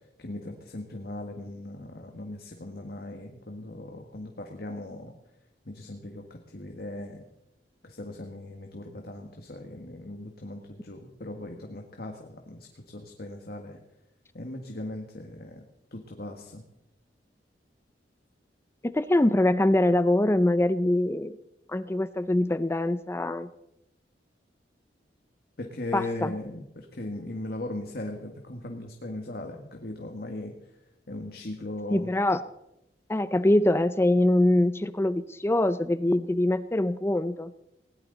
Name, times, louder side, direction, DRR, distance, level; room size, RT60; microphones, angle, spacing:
voice 1, 0.0-5.1 5.6-7.3 7.8-13.8 14.3-15.6 15.9-16.6 25.6-30.8 31.1-32.1, left 1 dB, 60° left, 3 dB, 1.6 m, -38 dB
voice 2, 18.8-21.3 21.7-23.5 25.9-26.3 31.9-32.4 33.1-37.5, left 1 dB, 15° left, 14 dB, 0.5 m, -23 dB
20.0 x 18.0 x 4.0 m, 0.86 s
head